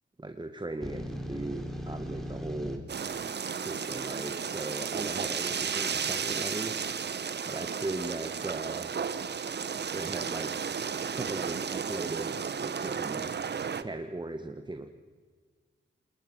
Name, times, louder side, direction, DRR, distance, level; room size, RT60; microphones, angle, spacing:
voice 1, 0.2-2.9 3.5-6.8 7.4-9.0 9.9-10.5 11.1-13.3 13.8-14.9, right 2 dB, 20° right, 6 dB, 1.8 m, -38 dB
sound 1, 0.8-2.8, equal, ahead, 4.6 m, -37 dB
sound 2, 2.9-13.8, right 6 dB, 60° right, 1.2 m, -33 dB
28.5 x 21.0 x 6.4 m, 1.5 s
cardioid pair, 80°, 20 cm